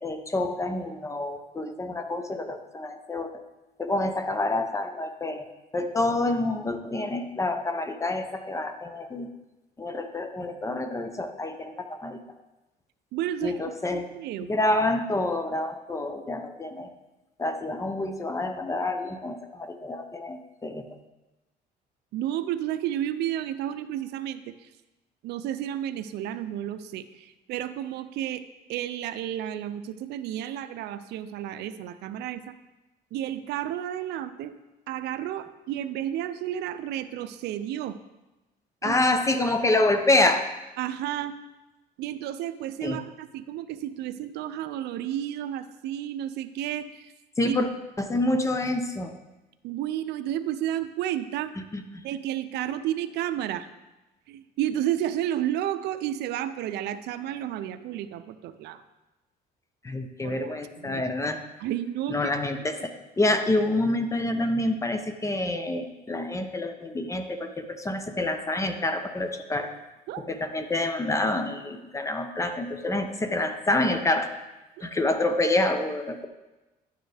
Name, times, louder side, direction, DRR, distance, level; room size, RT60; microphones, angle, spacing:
voice 1, 0.0-3.4 3.8-5.4 5.7-9.3 9.8-12.2 13.4-14.1 14.5-16.9 17.4-21.0 38.8-40.4 42.8-43.0 47.4-47.7 48.0-49.1 51.7-52.0 59.8-61.4 62.1-62.9 63.2-69.7 70.2-74.3 74.8-76.3, left 2 dB, 20° left, 7 dB, 0.8 m, -27 dB
voice 2, 13.1-13.5 13.9-14.5 22.1-24.5 25.2-28.4 28.7-32.5 33.1-34.5 34.9-38.0 38.8-39.0 40.8-41.3 42.0-47.1 47.4-47.6 49.6-51.5 52.0-53.7 54.3-58.8 60.2-61.0 61.6-62.2 70.1-70.2 74.8-74.9, right 11 dB, 80° right, 11 dB, 0.5 m, -31 dB
11.0 x 6.6 x 3.4 m, 1.1 s
cardioid pair, 110°, 17 cm